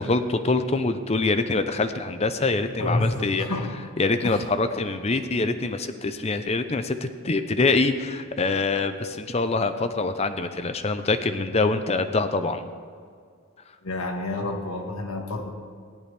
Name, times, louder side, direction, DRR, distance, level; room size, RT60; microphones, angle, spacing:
voice 1, 0.0-3.5 4.0-12.6, left 3 dB, 30° left, 10 dB, 0.5 m, -25 dB
voice 2, 2.7-3.7 4.2-4.4 13.8-15.5, left 2 dB, 80° left, 3 dB, 1.5 m, -29 dB
15.5 x 10.5 x 3.3 m, 2.2 s
head